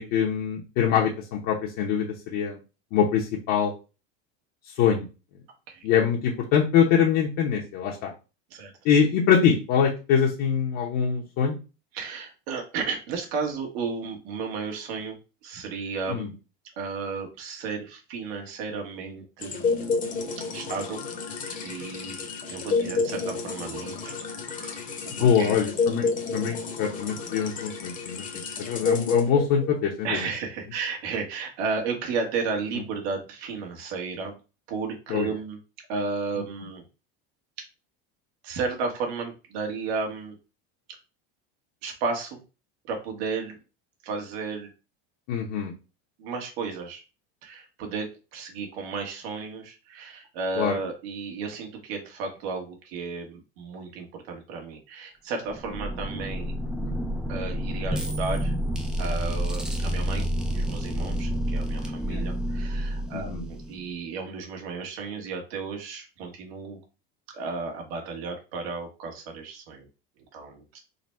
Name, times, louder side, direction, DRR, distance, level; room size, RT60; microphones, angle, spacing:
voice 1, 0.0-2.6 2.9-3.7 4.7-5.1 5.8-8.1 8.8-11.6 16.1-16.3 25.2-30.2 35.1-35.3 45.3-45.7 50.6-50.8 56.8-56.9 62.1-62.2 63.1-63.4, left 7 dB, 55° left, -1 dB, 0.9 m, -24 dB
voice 2, 11.9-15.2 15.4-16.3 16.8-19.7 20.5-21.0 21.6-24.1 24.5-24.9 25.2-25.6 30.0-34.4 34.7-35.6 35.9-36.8 38.4-40.4 41.8-42.4 42.9-43.6 44.0-44.7 46.2-47.0 47.4-56.5 57.3-58.5 59.0-66.8 67.3-69.9 70.3-70.8, right 4 dB, 75° right, 2 dB, 1.5 m, -33 dB
sound 1, 19.4-29.9, left 4 dB, 25° left, 0.8 m, -30 dB
sound 2, 55.4-64.0, equal, ahead, 0.4 m, -29 dB
3.9 x 2.2 x 4.3 m, 0.31 s
supercardioid pair, 150°, 32 cm